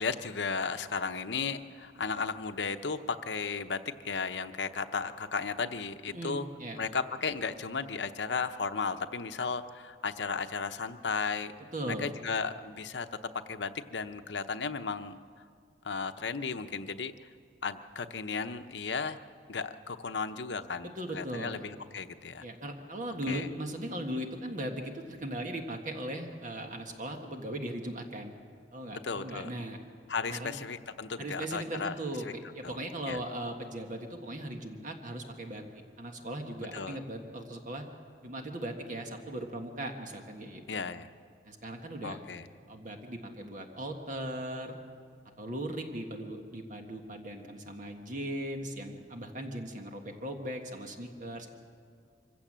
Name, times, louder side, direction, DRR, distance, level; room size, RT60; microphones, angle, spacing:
voice 1, 0.0-6.5 6.8-11.5 11.9-13.1 13.5-15.2 15.8-17.3 17.6-19.2 19.5-22.4 23.3-23.5 29.0-29.5 30.1-31.9 32.2-32.3 32.6-32.8 33.1-33.2 36.7-37.0 40.7-41.1 42.0-42.5, left 5 dB, 70° left, 9 dB, 0.8 m, -35 dB
voice 2, 6.1-6.8 11.7-12.1 20.8-21.7 22.4-28.3 28.7-29.8 30.3-30.6 31.2-35.6 36.0-37.9 38.2-40.8 41.4-42.2 42.7-44.8 45.4-51.5, right 1 dB, 45° right, 4 dB, 1.6 m, -38 dB
25.0 x 16.0 x 7.5 m, 2.1 s
head